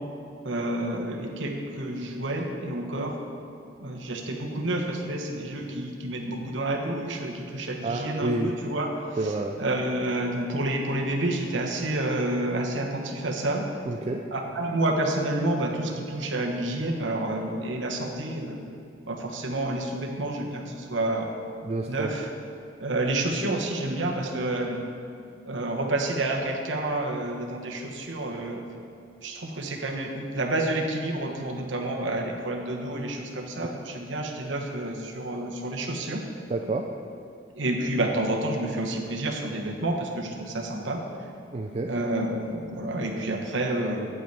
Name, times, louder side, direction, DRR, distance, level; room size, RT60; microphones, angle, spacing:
voice 1, 0.4-3.2 3.8-13.7 14.3-18.6 19.1-21.3 21.9-22.3 22.8-24.8 25.5-28.6 29.2-36.2 37.5-41.0 41.9-44.1, right 1 dB, 80° right, 2 dB, 1.1 m, -29 dB
voice 2, 7.8-8.5 9.2-9.5 13.9-14.2 21.6-22.1 36.5-36.9 41.5-41.9, right 2 dB, 35° right, 3 dB, 0.4 m, -29 dB
8.8 x 8.1 x 4.6 m, 2.5 s
head